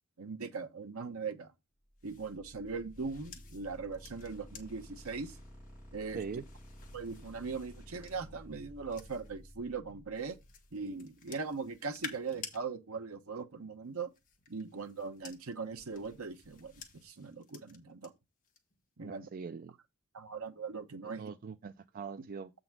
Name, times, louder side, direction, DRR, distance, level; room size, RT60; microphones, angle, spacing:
voice 1, 0.2-1.5 2.0-5.4 5.9-6.2 6.9-10.4 10.7-14.1 14.5-16.7 17.0-18.1 19.0-19.3 20.1-21.2, right 4 dB, 70° right, 1.0 m, -40 dB
sound 1, 1.9-10.7, equal, 5° right, 5.3 m, -53 dB
sound 2, 2.0-9.5 10.1-12.6 13.8-18.1 18.4-18.8, left 6 dB, 40° left, 1.4 m, -53 dB
voice 2, 19.0-19.7 21.2-22.5, right 5 dB, 40° right, 0.3 m, -42 dB
7.8 x 3.9 x 5.9 m
head